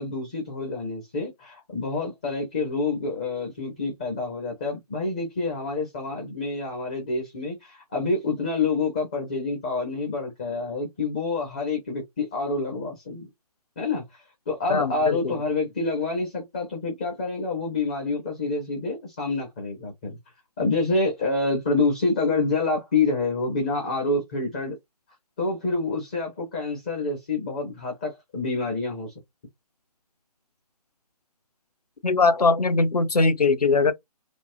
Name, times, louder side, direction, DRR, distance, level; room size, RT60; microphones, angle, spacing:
voice 1, 0.0-13.3 13.8-20.2 20.6-24.8 25.4-29.1, left 3 dB, 10° left, 0.4 m, -27 dB
voice 2, 14.7-15.3 32.0-33.9, left 3 dB, 75° left, 0.7 m, -21 dB
3.3 x 2.0 x 2.5 m
figure-of-eight pair, 150°, 20 cm